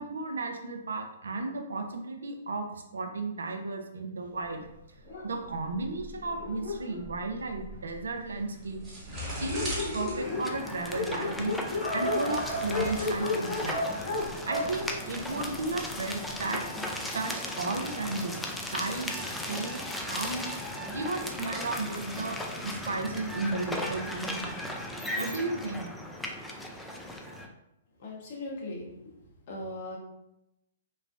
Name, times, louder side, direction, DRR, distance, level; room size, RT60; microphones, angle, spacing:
voice 1, 0.0-4.7 5.2-8.8 9.4-11.6 11.9-13.9 14.4-16.6 17.1-19.8 20.1-20.5 20.9-22.4 22.6-24.6 25.2-25.9, right 3 dB, 80° right, 5 dB, 0.4 m, -34 dB
Dog, 5.0-8.0 8.7-8.8 9.1-9.2 9.4-15.8, left 2 dB, 80° left, 1.4 m, -33 dB
sound 1, 8.2-15.8, right 1 dB, 20° right, 1.0 m, -41 dB
sound 2, 10.2-27.5, left 1 dB, 5° left, 0.3 m, -37 dB
voice 2, 28.0-29.2 29.5-30.0, left 1 dB, 55° left, -1 dB, 0.8 m, -39 dB
3.0 x 2.0 x 2.4 m, 0.87 s
hypercardioid pair, 125°, 0 cm